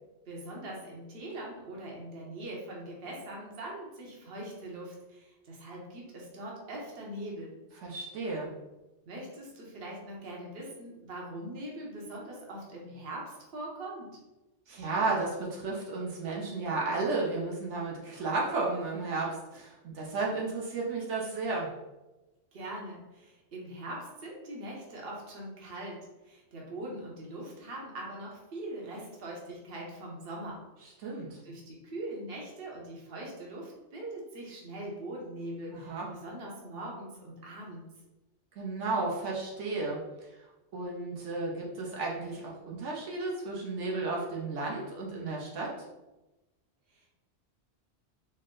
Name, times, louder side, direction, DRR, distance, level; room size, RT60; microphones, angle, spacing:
voice 1, 0.3-7.6 9.1-14.2 22.5-30.6 31.4-37.9 46.9-47.1, right 1 dB, 60° right, -2 dB, 1.1 m, -42 dB
voice 2, 7.8-8.5 14.7-21.7 31.0-31.4 35.7-36.1 38.6-40.0 40.7-45.7, right 3 dB, 85° right, -3 dB, 1.1 m, -33 dB
4.4 x 2.1 x 3.7 m, 1.0 s
omnidirectional pair, 1.2 m